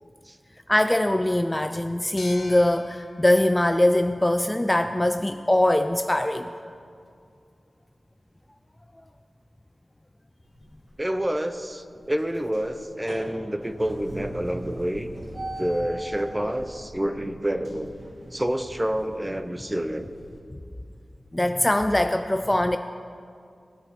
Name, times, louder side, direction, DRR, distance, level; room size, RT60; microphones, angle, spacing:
voice 1, 0.7-6.5 21.3-22.8, left 1 dB, 15° left, 8 dB, 0.4 m, -22 dB
sound 1, 2.2-5.5, left 3 dB, 70° left, 1.2 m, -46 dB
sound 2, 10.4-11.0 11.4-11.5 11.9-20.4, right 1 dB, 45° right, 2.2 m, -40 dB
voice 2, 11.0-15.1 15.6-17.9 18.3-20.1, right 1 dB, 15° right, 9 dB, 0.7 m, -28 dB
19.0 x 10.0 x 4.3 m, 2.4 s
wide cardioid pair, 90°, 0 cm